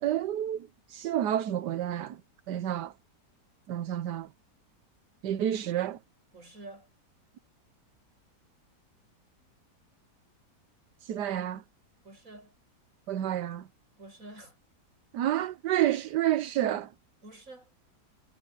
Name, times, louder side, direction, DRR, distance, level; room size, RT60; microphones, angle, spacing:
voice 1, 0.0-2.2 2.5-2.9 3.7-4.3 5.2-6.0 11.0-11.6 13.1-13.7 15.1-16.9, right 11 dB, 80° right, 1.4 m, -29 dB
voice 2, 6.3-6.9 12.0-12.6 14.0-14.6 17.2-17.7, right 2 dB, 50° right, 7.2 m, -48 dB
omnidirectional pair, 1.8 m